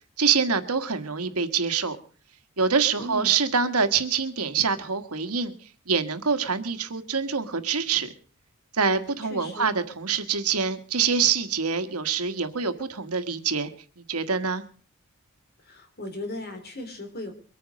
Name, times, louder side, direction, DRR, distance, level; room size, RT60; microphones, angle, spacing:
voice 1, 0.2-2.0 2.6-5.5 5.9-8.1 8.7-13.7 14.1-14.6, right 5 dB, 85° right, 9 dB, 1.6 m, -25 dB
voice 2, 3.0-3.3 9.3-9.7 15.6-17.3, left 1 dB, 45° left, 6 dB, 3.4 m, -36 dB
23.0 x 9.3 x 6.4 m, 0.43 s
head